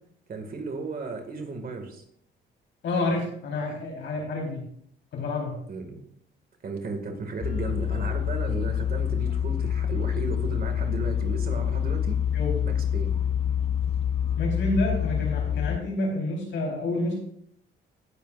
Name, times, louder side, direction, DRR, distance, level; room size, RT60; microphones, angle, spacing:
voice 1, 0.3-2.0 5.7-6.0 6.6-12.2 12.7-13.1, right 3 dB, 50° right, 4 dB, 2.1 m, -34 dB
voice 2, 2.8-4.7 5.1-5.6 12.3-12.6 14.4-17.2, left 2 dB, 70° left, -1 dB, 4.2 m, -28 dB
sound 1, 7.4-15.8, left 9 dB, 30° left, 0.3 m, -27 dB
17.5 x 7.5 x 2.6 m, 0.67 s
cardioid pair, 90°, 20 cm